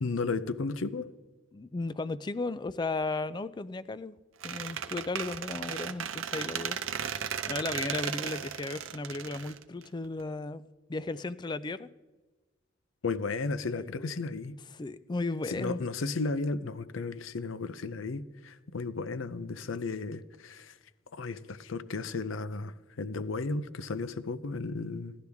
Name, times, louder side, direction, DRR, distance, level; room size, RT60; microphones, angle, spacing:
voice 1, 0.0-1.1 13.0-14.6 15.5-20.7 21.1-25.2, left 3 dB, 85° left, 0.6 m, -34 dB
voice 2, 1.5-4.2 4.4-6.8 7.5-11.9 13.7-14.1 14.7-15.8, left 3 dB, 20° left, 0.3 m, -35 dB
Squeak, 4.4-10.2, right 8 dB, 85° right, 0.7 m, -35 dB
16.5 x 11.5 x 3.5 m
head